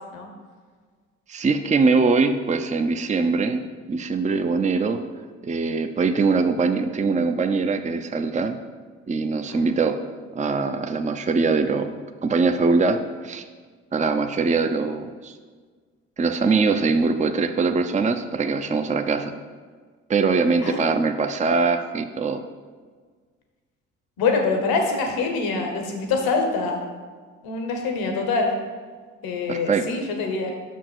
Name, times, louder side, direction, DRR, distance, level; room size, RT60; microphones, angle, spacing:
voice 1, 1.3-3.6 3.9-5.0 5.4-8.6 9.1-10.0 10.3-11.9 12.2-13.4 13.9-15.3 16.2-19.3 20.1-22.4 29.5-29.8, right 4 dB, 20° right, 7 dB, 0.6 m, -22 dB
voice 2, 24.2-26.8 27.4-28.5 29.2-30.5, left 4 dB, 80° left, 3 dB, 1.2 m, -25 dB
6.1 x 4.6 x 6.0 m, 1.5 s
hypercardioid pair, 45°, 36 cm